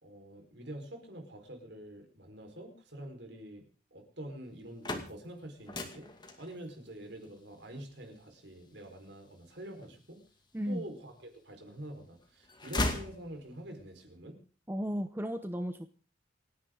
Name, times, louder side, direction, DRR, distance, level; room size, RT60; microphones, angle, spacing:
voice 1, 0.0-3.6 3.9-6.1 6.4-10.2 10.6-14.4, right 1 dB, 60° right, 5 dB, 4.6 m, -46 dB
sound 1, 4.5-10.5 11.1-11.9 12.2-13.8, left 1 dB, 20° left, 2.2 m, -39 dB
voice 2, 14.7-15.9, equal, 10° right, 9 dB, 0.8 m, -34 dB
29.0 x 10.0 x 3.9 m, 0.38 s
head